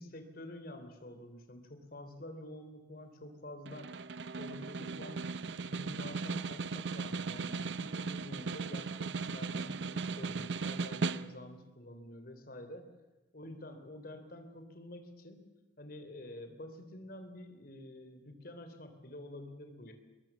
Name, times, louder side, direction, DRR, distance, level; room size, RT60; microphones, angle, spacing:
voice 1, 0.0-3.9 4.4-5.2 5.6-12.9 13.3-15.4 15.8-19.9, left 1 dB, 55° left, 7 dB, 3.2 m, -48 dB
Snare drum, 3.7-11.6, right 4 dB, 70° right, 0.6 m, -37 dB
21.5 x 21.0 x 7.2 m, 1.1 s
head